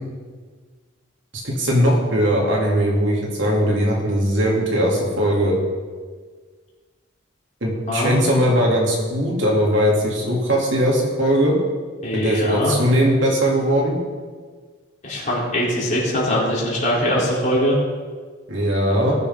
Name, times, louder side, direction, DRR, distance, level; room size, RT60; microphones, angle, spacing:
voice 1, 1.3-5.5 7.6-11.6 12.1-14.0 18.5-19.1, equal, 70° right, -2 dB, 3.0 m, -19 dB
voice 2, 7.9-8.4 12.0-12.8 15.0-17.8 18.9-19.1, equal, 40° left, -6 dB, 3.8 m, -22 dB
20.0 x 7.0 x 3.9 m, 1.5 s
head